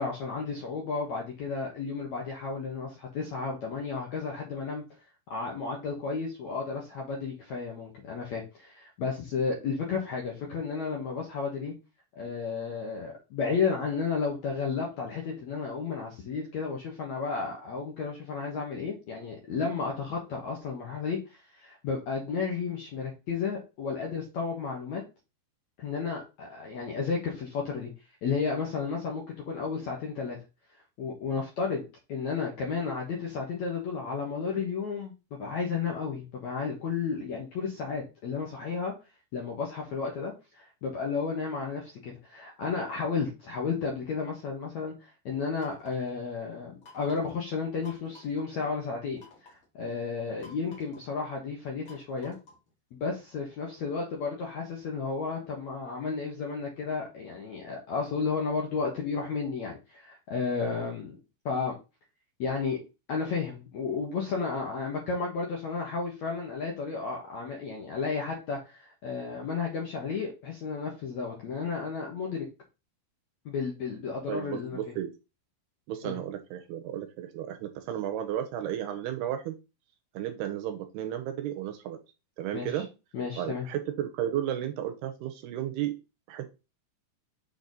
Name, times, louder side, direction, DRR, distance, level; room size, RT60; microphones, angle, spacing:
voice 1, 0.0-4.8 5.3-11.7 12.2-25.0 25.8-27.9 28.2-30.4 31.0-38.9 39.3-52.3 52.9-61.2 61.5-61.7 62.4-62.8 63.1-72.5 73.5-75.0 76.0-76.2 82.5-82.8 83.1-83.7, left 5 dB, 65° left, -1 dB, 1.8 m, -33 dB
sound 1, 45.6-46.1 46.8-47.3 47.8-48.4 49.2-49.6 50.4-51.1 51.9-52.7, left 3 dB, 45° left, 1.7 m, -53 dB
voice 2, 74.3-75.1 75.9-79.6 80.1-82.0 82.4-82.9 83.4-85.9 86.3-86.5, right 11 dB, 80° right, 6 dB, 2.6 m, -33 dB
6.8 x 4.2 x 4.0 m, 0.28 s
omnidirectional pair, 5.0 m